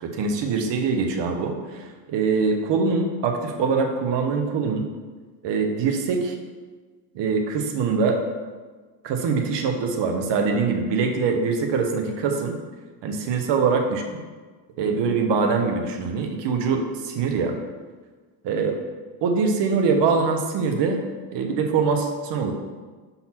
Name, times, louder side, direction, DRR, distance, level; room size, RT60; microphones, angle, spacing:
voice 1, 0.0-4.8 5.4-6.4 7.1-8.2 9.0-12.6 13.0-14.2 14.8-17.6 18.4-18.7 19.2-21.0 21.3-22.5, right 5 dB, 60° right, 4 dB, 1.2 m, -23 dB
5.5 x 4.3 x 5.9 m, 1.4 s
supercardioid pair, 95°, 47 cm